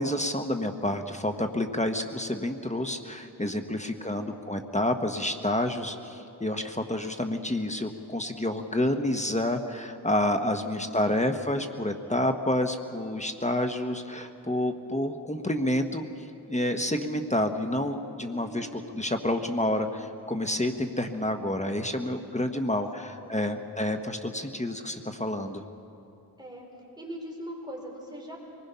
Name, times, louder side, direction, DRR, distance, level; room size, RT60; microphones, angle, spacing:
voice 1, 0.0-16.0 16.5-18.7 18.9-25.6, left 1 dB, 20° left, 6 dB, 1.2 m, -29 dB
voice 2, 3.8-4.3 10.5-10.8 11.1-11.2 18.3-18.8 22.7-23.6 26.4-26.7 27.0-28.4, equal, 10° right, -1 dB, 4.9 m, -42 dB
25.0 x 20.0 x 5.7 m, 2.7 s
wide cardioid pair, 60°, 39 cm